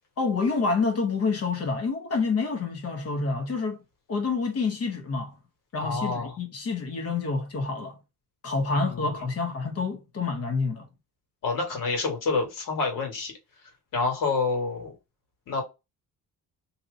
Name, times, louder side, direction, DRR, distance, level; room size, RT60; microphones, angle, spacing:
voice 1, 0.2-3.8 4.1-5.3 5.7-8.0 8.4-10.9, left 4 dB, 45° left, 0.9 m, -28 dB
voice 2, 5.8-6.3 8.7-9.2 11.4-13.3 13.9-14.9 15.5-15.6, left 4 dB, 70° left, 1.8 m, -28 dB
2.9 x 2.8 x 3.8 m
cardioid pair, 170°, 34 cm